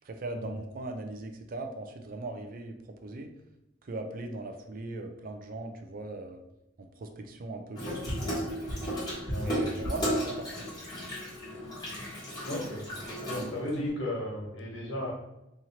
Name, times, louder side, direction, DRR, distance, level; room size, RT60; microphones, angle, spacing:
voice 1, 0.0-3.3 3.8-6.4 6.8-8.0 9.4-10.9, right 2 dB, 45° right, 6 dB, 0.4 m, -39 dB
Water tap faucet / Sink (filling or washing), 7.7-13.9, equal, 20° left, 1.2 m, -34 dB
voice 2, 12.4-12.8 13.2-15.1, left 1 dB, 75° left, -3 dB, 1.4 m, -35 dB
2.9 x 2.6 x 4.2 m, 0.92 s
head